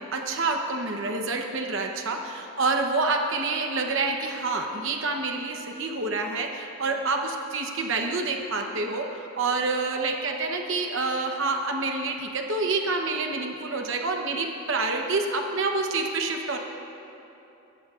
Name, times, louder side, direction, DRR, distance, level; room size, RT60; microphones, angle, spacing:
voice 1, 0.0-16.6, right 3 dB, 65° right, 3 dB, 0.9 m, -27 dB
23.0 x 14.0 x 2.5 m, 2.9 s
head